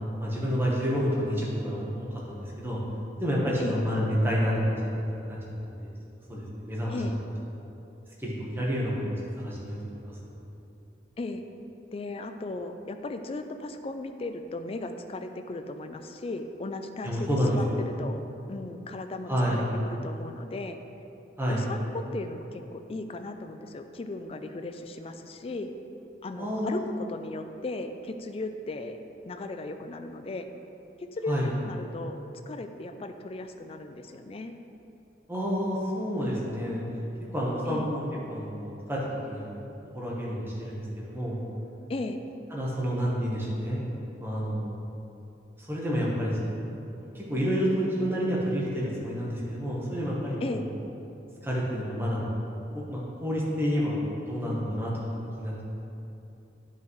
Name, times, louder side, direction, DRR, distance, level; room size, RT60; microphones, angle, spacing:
voice 1, 0.2-2.8 3.2-4.7 5.1-5.9 6.3-7.0 7.6-7.7 8.2-9.1 9.4-10.2 17.0-17.8 19.3-19.6 21.4-21.6 26.4-26.9 31.3-31.5 35.3-36.8 37.3-39.5 39.9-41.4 42.5-43.8 44.2-44.7 45.6-46.6 47.0-50.7 51.4-52.3 52.7-55.5, equal, 15° right, -5 dB, 1.2 m, -29 dB
voice 2, 11.9-17.3 17.5-18.2 18.5-20.8 21.5-25.7 26.2-29.0 29.3-30.5 31.1-32.2 32.5-34.5 37.7-37.9 41.9-42.2 50.4-50.7, left 2 dB, 35° left, 7 dB, 0.3 m, -36 dB
10.0 x 5.6 x 3.2 m, 2.9 s
head